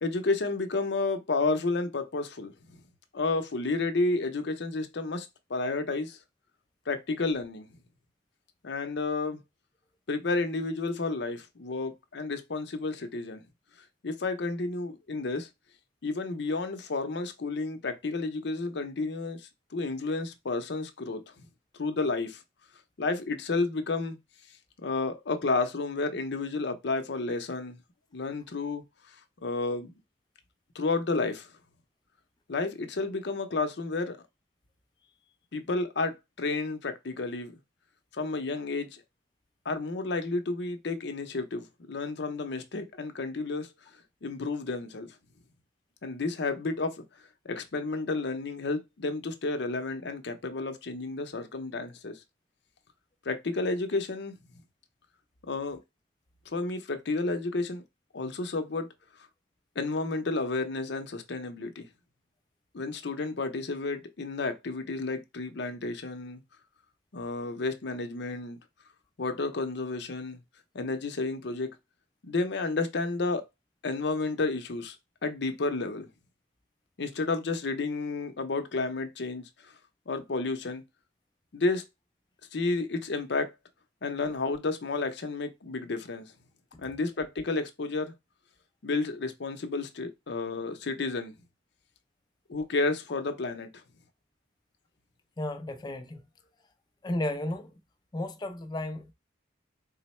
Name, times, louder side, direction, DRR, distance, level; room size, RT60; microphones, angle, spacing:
voice 1, 0.0-2.8 3.1-6.2 6.9-7.7 8.6-9.4 10.1-13.4 14.0-15.5 16.0-21.2 21.7-22.4 23.0-24.2 24.8-27.8 28.1-28.8 29.4-29.9 30.7-31.5 32.5-34.2 35.5-37.5 38.1-39.0 39.6-43.7 44.2-45.1 46.0-47.0 47.4-52.2 53.3-54.3 55.4-55.8 56.5-57.8 58.1-58.9 59.8-61.9 62.7-66.4 67.1-68.6 69.2-70.4 70.7-71.7 72.2-73.4 73.8-75.0 75.2-76.1 77.0-79.7 80.1-80.8 81.5-81.8 82.5-83.5 84.0-86.3 86.8-88.1 88.8-91.3 92.5-93.7, left 3 dB, 65° left, 0.6 m, -31 dB
voice 2, 95.4-96.2 97.0-97.7 98.1-99.1, left 1 dB, 25° left, 0.4 m, -33 dB
3.9 x 2.0 x 4.2 m
head